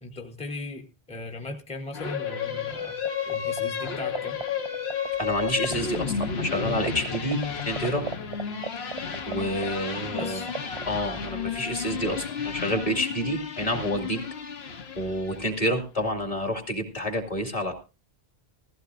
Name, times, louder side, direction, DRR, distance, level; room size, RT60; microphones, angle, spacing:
voice 1, 0.0-4.4 10.2-10.5, left 2 dB, 5° left, 3 dB, 0.9 m, -38 dB
sound 1, 1.9-15.6, left 7 dB, 80° left, 1.2 m, -32 dB
sound 2, 3.0-3.6 3.9-6.0 6.2-6.3 6.5-10.2 10.5-10.8, right 6 dB, 35° right, 0.6 m, -32 dB
voice 2, 5.2-7.4 7.7-8.1 9.3-10.5 10.9-14.2 15.0-17.7, equal, 35° left, 4 dB, 2.3 m, -28 dB
16.0 x 15.0 x 2.6 m, 0.30 s
omnidirectional pair, 1.1 m